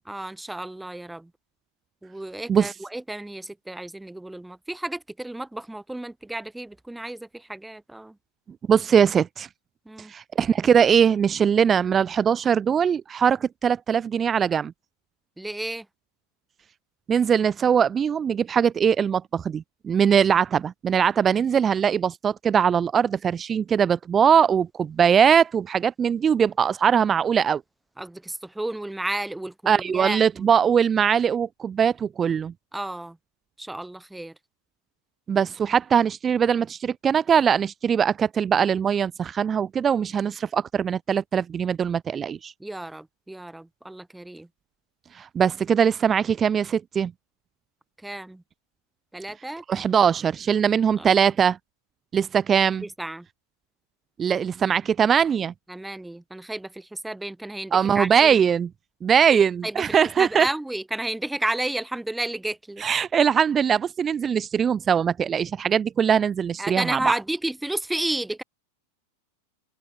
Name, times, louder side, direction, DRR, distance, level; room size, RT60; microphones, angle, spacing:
voice 1, 0.1-1.3 2.0-8.2 9.9-10.1 15.4-15.9 28.0-30.5 32.7-33.2 33.6-34.3 42.6-44.5 48.0-48.4 49.1-49.6 51.0-51.2 52.8-53.3 55.7-58.4 59.3-59.8 60.2-62.8 66.6-68.4, right 1 dB, 5° right, 2.4 m, -32 dB
voice 2, 8.7-9.5 10.1-14.7 17.1-27.6 29.7-32.5 35.3-42.5 45.1-47.1 49.7-51.6 52.1-52.8 54.2-55.5 57.7-58.7 59.0-60.5 62.8-67.1, right 7 dB, 20° right, 2.1 m, -21 dB
open air
figure-of-eight pair, 90°, 0 cm